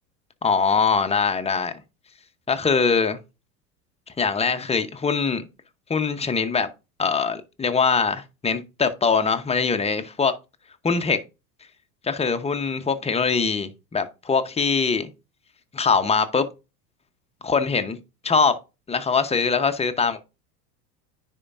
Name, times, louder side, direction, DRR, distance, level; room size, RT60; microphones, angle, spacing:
voice 1, 0.4-1.7 2.5-3.2 4.2-5.4 5.9-6.7 7.0-10.3 10.8-11.2 12.0-15.1 15.7-16.5 17.4-18.0 18.2-18.6 18.9-20.2, left 5 dB, 15° left, 0.9 m, -22 dB
9.8 x 4.5 x 2.5 m
hypercardioid pair, 85°, 49 cm